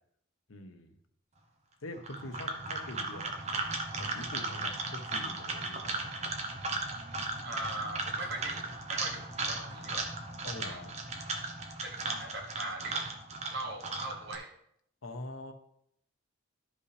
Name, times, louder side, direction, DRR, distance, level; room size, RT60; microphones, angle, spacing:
voice 1, 0.5-0.9 1.8-6.1 10.4-10.9 15.0-15.5, left 1 dB, 80° left, 6 dB, 1.0 m, -45 dB
sound 1, 2.0-14.3, right 3 dB, 35° right, 0.9 m, -36 dB
voice 2, 7.4-10.1 10.4-10.8 11.8-13.1 13.5-14.5, right 2 dB, 55° right, 2 dB, 1.6 m, -40 dB
12.5 x 5.3 x 3.3 m, 0.72 s
head